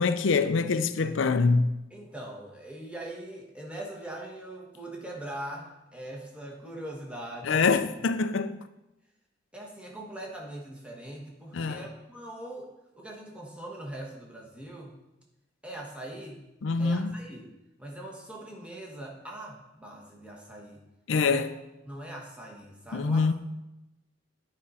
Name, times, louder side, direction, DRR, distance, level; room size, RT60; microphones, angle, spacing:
voice 1, 0.0-1.7 7.4-8.6 11.5-11.8 16.6-17.1 21.1-21.5 22.9-23.3, left 4 dB, 70° left, 0.5 m, -25 dB
voice 2, 1.9-7.7 9.5-12.7 12.9-15.0 15.6-16.4 16.8-20.8 21.1-21.4 21.8-23.3, right 1 dB, 5° right, 1.3 m, -41 dB
10.5 x 5.2 x 4.2 m
head